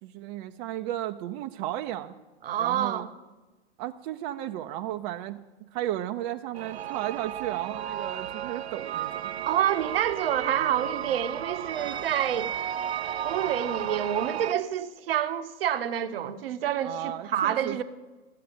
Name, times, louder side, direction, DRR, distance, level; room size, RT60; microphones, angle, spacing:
voice 1, 0.0-2.1 2.6-3.1 3.8-5.4 5.7-9.3 16.8-17.8, right 13 dB, 40° right, 0.7 m, -34 dB
voice 2, 2.4-3.1 9.5-12.5 13.2-17.8, right 10 dB, 65° right, 1.0 m, -28 dB
sound 1, 6.5-14.5, right 10 dB, 85° right, 0.5 m, -33 dB
13.0 x 7.6 x 9.6 m
hypercardioid pair, 105°, 31 cm